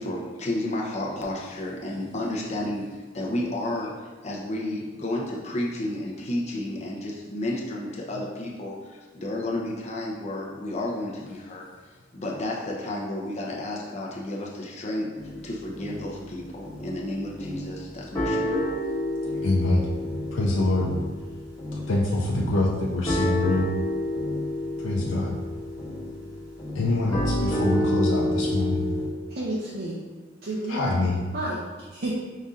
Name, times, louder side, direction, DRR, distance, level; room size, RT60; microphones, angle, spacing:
voice 1, 0.0-2.8 3.1-3.9 4.2-11.7 12.1-15.1 15.4-18.6, left 1 dB, 40° left, -3 dB, 0.8 m, -31 dB
sound 1, 15.2-16.3 16.6-17.0 17.4-17.8 18.2-29.1, left 1 dB, 20° left, 1.2 m, -30 dB
voice 2, 19.4-19.8 20.3-20.9 21.9-23.7 24.8-25.4 26.7-28.9 30.7-31.2, left 2 dB, 85° left, -3 dB, 0.6 m, -24 dB
voice 3, 29.3-30.0 30.4-31.0 31.3-32.1, right 1 dB, 55° right, -7 dB, 0.7 m, -31 dB
5.2 x 2.7 x 3.6 m, 1.4 s
head